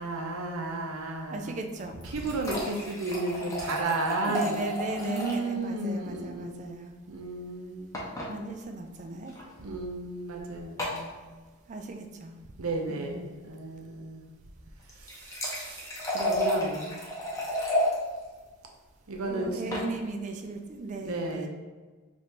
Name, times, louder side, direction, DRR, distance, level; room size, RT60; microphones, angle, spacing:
voice 1, 0.0-1.6 2.0-4.6 4.9-6.7 7.1-8.0 9.6-11.1 12.6-14.2 15.0-17.0 19.1-19.8 21.0-21.5, right 2 dB, 80° right, 2 dB, 0.6 m, -33 dB
voice 2, 1.3-2.0 4.2-6.9 8.3-9.3 11.7-12.3 12.9-13.3 19.3-21.5, right 2 dB, 35° right, 5 dB, 0.3 m, -37 dB
sound 1, 1.8-5.5 5.8-5.9 6.1-6.2 7.9-8.3 9.3-9.4 10.8-11.1 14.8-17.9 19.4-19.9, equal, 15° left, 0.7 m, -32 dB
3.2 x 2.6 x 4.4 m, 1.3 s
head